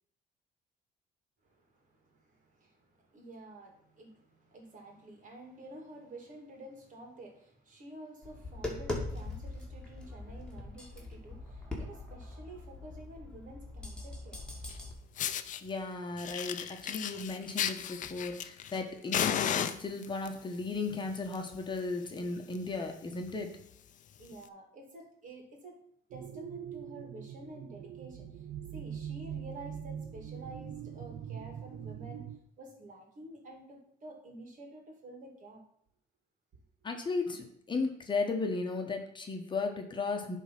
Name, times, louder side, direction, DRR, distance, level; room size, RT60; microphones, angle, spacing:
voice 1, 1.4-14.5 24.2-25.8 26.1-28.4 28.7-32.3 32.6-35.6, right 1 dB, 50° right, 2 dB, 2.5 m, -50 dB
Tap, 8.2-14.9, left 2 dB, 5° left, 2.2 m, -41 dB
Fire, 14.7-14.8 15.2-15.6 16.2-18.8 19.1-20.3 21.1-21.4 21.7-21.8 22.2-22.3 22.5-22.8 23.3-23.4 24.3-24.4, left 9 dB, 50° left, 0.6 m, -34 dB
voice 2, 15.6-23.5 36.8-40.4, left 3 dB, 30° left, 4 dB, 1.2 m, -35 dB
sound 1, 26.1-32.4, right 9 dB, 70° right, 0.6 m, -43 dB
10.0 x 3.7 x 5.9 m, 0.68 s
cardioid pair, 110°, 17 cm